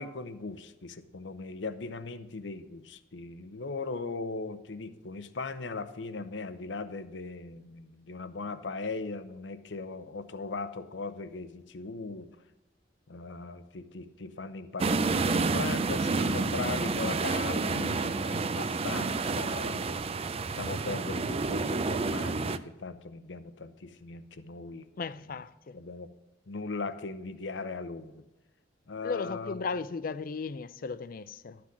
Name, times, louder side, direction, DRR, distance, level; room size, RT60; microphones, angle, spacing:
voice 1, 0.0-12.3 13.1-20.0 20.5-25.4 25.7-26.1 26.5-28.2 28.9-29.6, left 3 dB, 75° left, 0.8 m, -39 dB
sound 1, 14.8-22.6, right 3 dB, 35° right, 0.4 m, -29 dB
voice 2, 25.0-25.7 29.0-31.6, left 4 dB, 50° left, 0.4 m, -36 dB
11.5 x 6.1 x 6.0 m
head